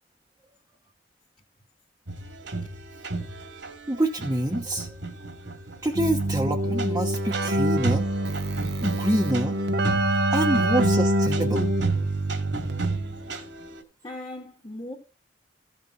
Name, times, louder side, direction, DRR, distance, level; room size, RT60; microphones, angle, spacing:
sound 1, 2.1-13.8, right 3 dB, 80° right, 2.4 m, -34 dB
voice 1, 3.9-4.9 5.8-8.0 8.8-9.6 10.3-11.7 13.3-13.4, right 1 dB, 15° right, 1.2 m, -26 dB
Keyboard (musical), 6.0-13.2, right 1 dB, 60° right, 1.0 m, -25 dB
voice 2, 14.0-14.9, left 1 dB, 25° left, 2.1 m, -40 dB
15.5 x 6.8 x 3.9 m
head